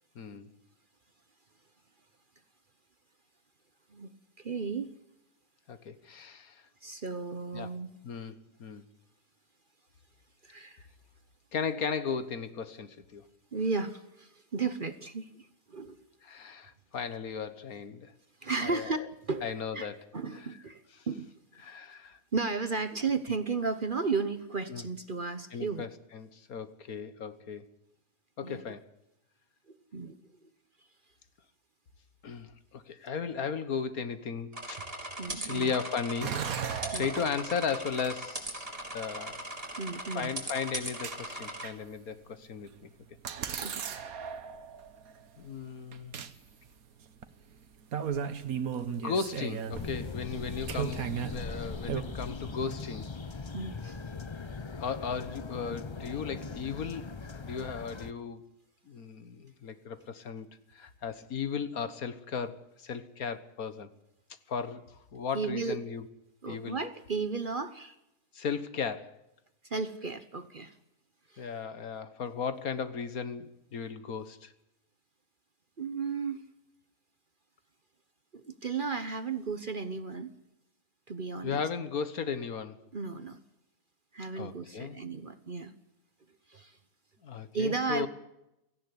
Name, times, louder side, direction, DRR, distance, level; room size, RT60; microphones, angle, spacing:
voice 1, 0.2-0.5 5.7-6.6 7.5-7.7 8.0-8.8 11.5-13.3 16.2-18.1 18.6-19.1 19.4-20.1 20.3-20.5 21.0-21.1 21.6-22.2 23.0-23.1 24.7-24.8 25.5-27.7 28.4-28.9 32.2-34.8 35.3-38.7 38.9-39.5 40.2-42.9 45.4-46.1 48.9-53.1 54.8-57.1 57.4-58.4 58.9-63.9 64.5-66.0 66.5-66.8 68.3-69.2 71.4-74.5 81.4-82.8 84.4-85.0 87.2-88.1, left 6 dB, 65° left, 13 dB, 1.8 m, -36 dB
voice 2, 4.4-4.9 6.8-7.9 10.4-10.8 13.5-16.1 18.4-19.9 20.1-21.3 22.3-25.9 28.4-28.6 29.7-30.2 35.2-35.7 36.9-37.1 39.8-40.3 43.6-43.9 53.5-54.0 65.3-65.8 66.4-68.0 69.7-70.7 71.3-71.5 75.8-76.4 78.3-80.3 81.1-81.6 82.9-83.4 84.1-85.7 86.5-86.8 87.5-88.1, right 4 dB, 40° right, 12 dB, 1.0 m, -34 dB
sound 1, 34.5-41.7, right 1 dB, 20° right, 3.7 m, -39 dB
sound 2, 36.2-38.3 39.3-39.4 40.6-41.9 42.7-42.8 43.2-45.6 45.9-46.3 46.6-46.7 47.2-47.3 47.5-47.6 47.9-52.0, right 7 dB, 65° right, 1.6 m, -36 dB
sound 3, 49.7-58.1, left 4 dB, 30° left, 0.6 m, -40 dB
17.5 x 15.5 x 9.7 m, 0.86 s
omnidirectional pair, 1.6 m